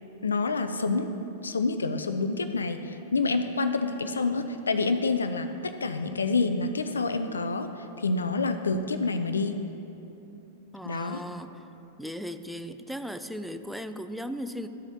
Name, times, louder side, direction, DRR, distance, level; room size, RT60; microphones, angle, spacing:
voice 1, 0.2-1.1 1.4-7.7 8.0-9.6 10.8-11.2, left 3 dB, 85° left, 9 dB, 0.4 m, -27 dB
voice 2, 10.7-11.7 12.0-14.7, equal, ahead, 9 dB, 0.4 m, -37 dB
13.0 x 4.9 x 2.8 m, 3.0 s
hypercardioid pair, 100°, 0 cm